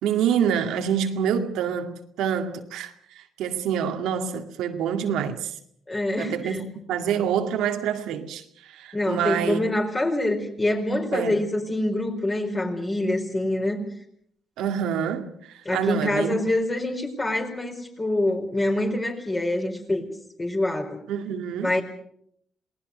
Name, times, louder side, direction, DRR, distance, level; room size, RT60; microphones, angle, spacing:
voice 1, 0.0-5.6 6.2-6.6 6.9-9.6 11.1-11.4 14.6-16.4 21.1-21.7, right 8 dB, 90° right, 2.3 m, -27 dB
voice 2, 5.9-6.6 8.9-13.8 15.6-20.1 20.4-21.0 21.6-21.8, left 1 dB, 25° left, 4.7 m, -25 dB
28.0 x 19.0 x 6.6 m
cardioid pair, 90°, 0 cm